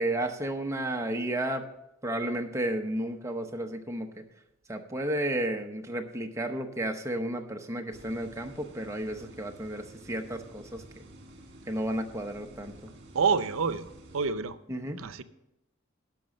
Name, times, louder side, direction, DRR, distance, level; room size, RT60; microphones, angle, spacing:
voice 1, 0.0-1.6 2.0-4.1 4.7-11.0 11.7-12.9 14.7-15.0, right 1 dB, 15° right, 4 dB, 0.8 m, -32 dB
sound 1, 7.9-14.3, right 1 dB, 55° right, 1.7 m, -51 dB
voice 2, 13.1-13.9 14.1-14.6 15.0-15.2, right 5 dB, 80° right, 13 dB, 0.6 m, -27 dB
11.0 x 6.1 x 6.5 m, 0.88 s
head